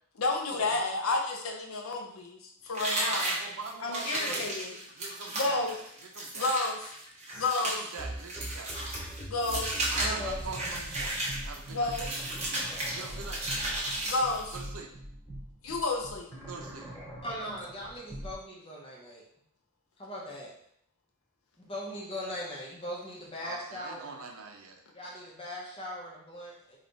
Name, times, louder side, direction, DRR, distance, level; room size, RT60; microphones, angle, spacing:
voice 1, 0.2-3.3 3.8-4.7 5.4-5.7 6.4-6.9 7.4-7.8 9.3-9.8 11.7-12.1 14.0-14.5 15.6-16.3, left 3 dB, 75° left, 3 dB, 0.6 m, -31 dB
sound 1, 2.7-14.7, right 1 dB, 30° right, 0.8 m, -34 dB
voice 2, 2.8-6.5 7.7-8.8 9.9-12.0 12.9-13.5 14.5-14.9 16.5-16.9 23.4-24.8, right 4 dB, 80° right, 2 dB, 0.6 m, -43 dB
sound 2, 7.3-7.5 8.0-18.3, right 1 dB, 10° left, 1.4 m, -42 dB
voice 3, 9.9-10.6 12.5-12.7 17.2-19.2 20.0-20.5 21.6-24.2 24.9-26.8, equal, 25° left, -3 dB, 0.8 m, -39 dB
3.3 x 2.4 x 3.9 m, 0.69 s
head